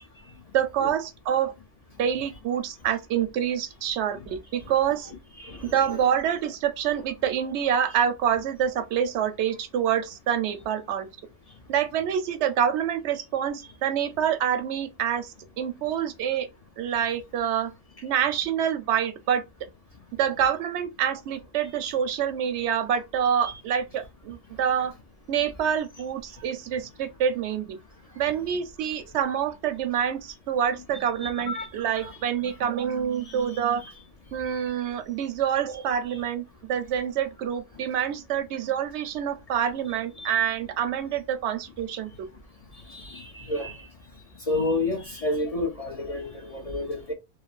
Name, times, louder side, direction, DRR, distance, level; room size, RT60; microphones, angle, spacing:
voice 1, 0.5-1.5 2.0-5.1 5.6-11.1 11.7-16.5 16.8-17.7 18.0-19.4 20.2-24.9 25.3-27.8 28.2-33.8 34.3-42.1, right 9 dB, 80° right, 0.9 m, -26 dB
voice 2, 5.4-6.0 31.2-31.7 40.2-40.3 42.9-43.8 44.5-47.1, left 2 dB, 45° left, 0.5 m, -30 dB
3.1 x 2.0 x 2.3 m
omnidirectional pair, 1.1 m